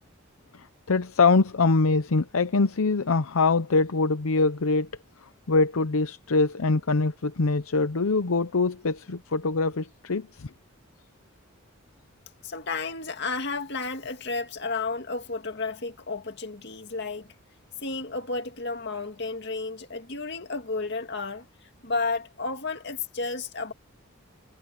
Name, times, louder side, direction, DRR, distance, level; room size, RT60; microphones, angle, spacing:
voice 1, 0.6-4.9 5.5-10.5, left 3 dB, 75° left, 0.7 m, -23 dB
voice 2, 12.4-17.3 17.8-21.5 21.8-23.7, left 3 dB, 50° left, 2.2 m, -32 dB
head